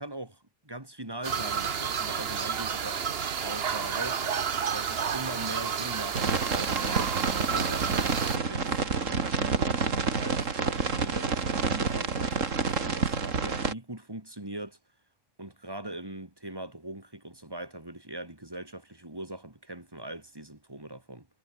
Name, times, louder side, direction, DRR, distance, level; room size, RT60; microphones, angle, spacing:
voice 1, 0.0-3.0 3.4-4.2 4.7-9.6 10.2-14.8 15.4-21.3, right 1 dB, 20° right, 2.7 m, -41 dB
sound 1, 1.2-8.4, right 7 dB, 55° right, 1.2 m, -31 dB
sound 2, 6.1-13.7, right 4 dB, 85° right, 2.5 m, -28 dB
omnidirectional pair, 1.3 m